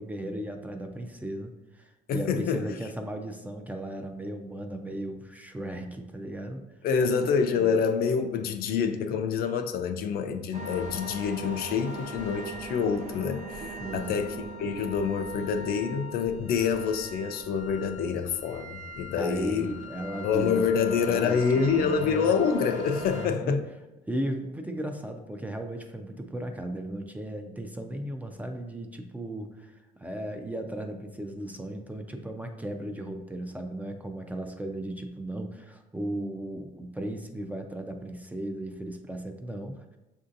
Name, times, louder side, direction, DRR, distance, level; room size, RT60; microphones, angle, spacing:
voice 1, 0.0-6.6 7.6-7.7 13.8-14.1 19.1-20.8 21.0-22.3 23.1-23.6 24.1-40.0, right 1 dB, 10° right, 5 dB, 0.4 m, -36 dB
voice 2, 2.1-2.7 6.8-19.7 20.2-23.6, left 6 dB, 65° left, 7 dB, 0.4 m, -27 dB
sound 1, 10.5-23.3, equal, 45° right, 0.6 m, -40 dB
6.6 x 2.6 x 2.5 m, 1.0 s
cardioid pair, 110°, 17 cm